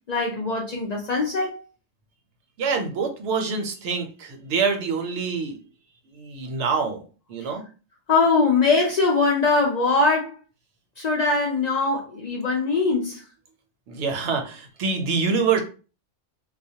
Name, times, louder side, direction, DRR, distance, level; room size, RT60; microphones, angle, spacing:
voice 1, 0.1-1.6 8.1-10.3 11.0-13.2, left 3 dB, 65° left, 0.4 m, -21 dB
voice 2, 2.6-5.6 6.1-7.0 7.3-7.6 13.9-15.6, right 5 dB, 70° right, 0.8 m, -25 dB
2.3 x 2.1 x 2.7 m
omnidirectional pair, 1.3 m